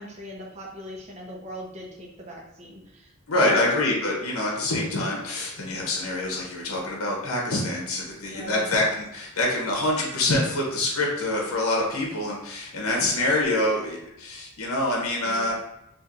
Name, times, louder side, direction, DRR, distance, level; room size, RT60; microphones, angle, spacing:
voice 1, 0.0-3.7 8.2-8.7 15.2-15.5, right 1 dB, 30° right, -1 dB, 0.7 m, -39 dB
voice 2, 3.3-15.5, left 2 dB, 75° left, -2 dB, 1.0 m, -25 dB
4.3 x 2.6 x 2.5 m, 0.82 s
head